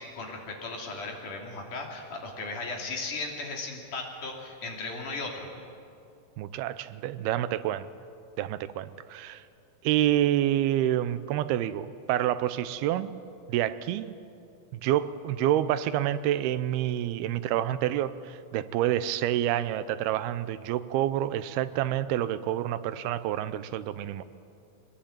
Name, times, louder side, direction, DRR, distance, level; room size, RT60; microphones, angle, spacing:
voice 1, 0.0-5.5, left 3 dB, 55° left, 0 dB, 4.3 m, -36 dB
voice 2, 6.4-7.9 8.4-9.4 9.8-13.1 13.5-14.1 14.7-24.2, right 12 dB, 85° right, 14 dB, 2.6 m, -28 dB
24.5 x 20.5 x 8.8 m, 2.5 s
omnidirectional pair, 4.4 m